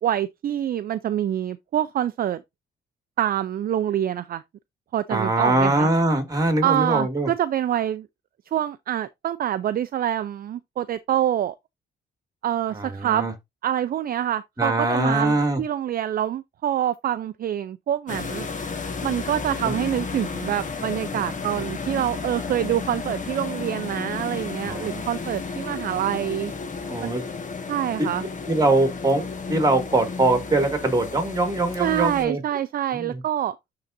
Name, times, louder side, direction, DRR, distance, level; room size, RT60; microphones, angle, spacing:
voice 1, 0.0-2.4 3.2-4.4 4.9-5.9 6.6-8.1 8.5-11.6 12.4-13.3 13.6-18.5 19.0-26.5 27.0-27.1 27.7-28.2 31.8-33.6, right 11 dB, 50° right, 0.4 m, -26 dB
voice 2, 5.1-7.3 12.7-13.3 14.6-15.6 19.6-19.7 24.6-25.0 26.9-27.2 28.0-28.1 28.5-32.4 32.9-33.2, right 2 dB, 20° right, 2.2 m, -22 dB
sound 1, 18.1-32.3, left 4 dB, 40° left, 1.4 m, -33 dB
11.0 x 3.9 x 2.6 m
cardioid pair, 90°, 20 cm